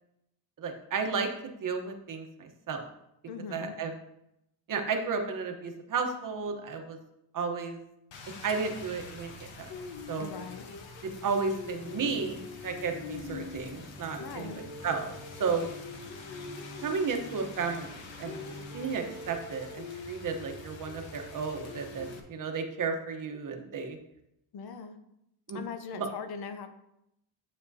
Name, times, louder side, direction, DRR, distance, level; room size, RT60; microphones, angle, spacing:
voice 1, 0.6-2.9 3.5-3.9 4.7-7.0 7.3-7.8 8.4-9.7 10.1-10.3 11.2-14.5 14.8-15.1 15.4-15.7 16.8-18.4 18.7-24.0 25.5-25.6 25.9-26.1, right 5 dB, 45° right, 4 dB, 1.0 m, -33 dB
voice 2, 3.3-3.8 10.2-10.7 14.2-14.6 24.5-25.0 25.5-26.7, left 6 dB, 55° left, 8 dB, 0.7 m, -40 dB
Rain, 8.1-22.2, left 3 dB, 80° left, 1.2 m, -44 dB
Bowed string instrument, 11.8-19.3, left 1 dB, 20° left, 1.1 m, -49 dB
9.6 x 7.0 x 2.7 m, 0.81 s
cardioid pair, 175°, 45 cm